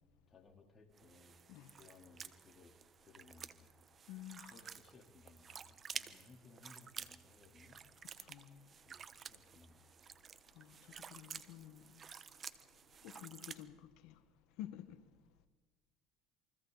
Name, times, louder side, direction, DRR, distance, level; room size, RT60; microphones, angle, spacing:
voice 1, 0.3-1.4 1.7-2.7 3.0-3.7 4.5-7.8 8.8-9.9, left 4 dB, 35° left, 3.8 m, -62 dB
sound 1, 1.0-13.6, right 7 dB, 40° right, 1.1 m, -52 dB
voice 2, 4.1-4.6 8.2-8.7 10.6-10.8 11.1-12.0 13.0-13.8 14.0-14.1 14.6-15.0, left 12 dB, 70° left, 1.5 m, -50 dB
28.5 x 24.0 x 4.1 m
supercardioid pair, 90°, 0 cm